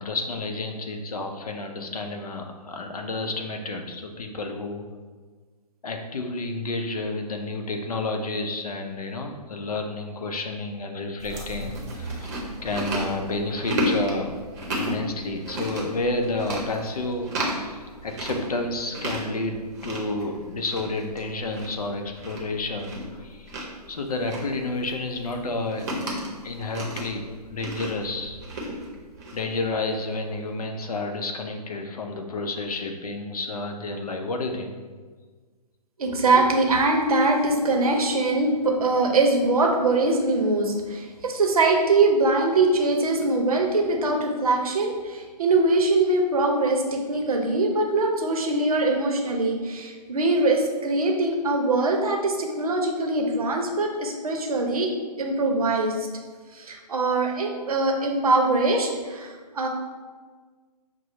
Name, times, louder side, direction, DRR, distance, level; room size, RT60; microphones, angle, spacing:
voice 1, 0.0-4.8 5.8-12.3 12.6-14.3 14.7-17.3 17.6-23.5 23.9-25.9 26.4-28.4 29.3-34.7, left 2 dB, 60° left, 4 dB, 0.6 m, -30 dB
Chewing mastication, 11.2-30.1, equal, 25° right, 0.7 m, -33 dB
voice 2, 36.0-54.9 55.2-56.1 56.5-59.7, right 2 dB, 60° right, 2 dB, 0.7 m, -22 dB
5.8 x 2.0 x 3.1 m, 1.5 s
figure-of-eight pair, 130°, 21 cm